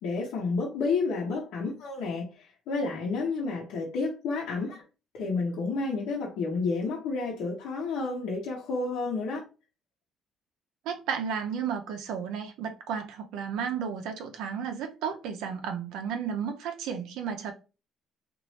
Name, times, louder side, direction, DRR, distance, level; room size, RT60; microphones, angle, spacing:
voice 1, 0.0-4.8 5.1-9.4, left 4 dB, 80° left, 0.9 m, -30 dB
voice 2, 10.8-17.5, right 7 dB, 85° right, 0.6 m, -33 dB
3.1 x 2.5 x 2.8 m
cardioid pair, 110°, 0 cm